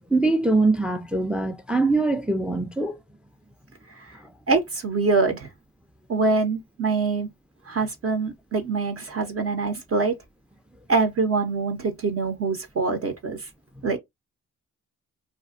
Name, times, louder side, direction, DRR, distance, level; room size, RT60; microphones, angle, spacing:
voice 1, 0.1-3.0, right 2 dB, 5° right, 0.3 m, -22 dB
voice 2, 4.5-5.5 6.1-7.3 7.7-10.2 10.9-13.5 13.8-14.0, right 3 dB, 45° right, 0.6 m, -24 dB
2.4 x 2.2 x 2.4 m
supercardioid pair, 55°, 31 cm